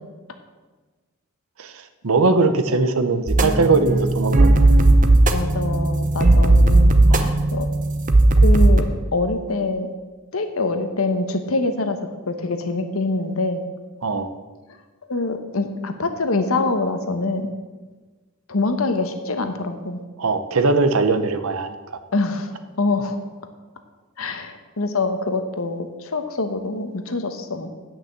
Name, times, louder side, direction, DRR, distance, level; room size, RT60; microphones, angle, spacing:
voice 1, 1.6-4.7 7.1-7.3 14.0-14.3 20.2-22.0, right 3 dB, 75° right, 9 dB, 0.8 m, -21 dB
sound 1, 3.3-8.8, right 2 dB, 35° right, 0.7 m, -16 dB
voice 2, 5.3-7.7 8.4-8.9 9.1-9.9 10.3-12.0 12.3-13.6 15.1-17.5 18.5-20.0 22.1-23.2 24.2-27.7, left 3 dB, 75° left, 8 dB, 1.0 m, -25 dB
9.5 x 5.9 x 7.4 m, 1.3 s
head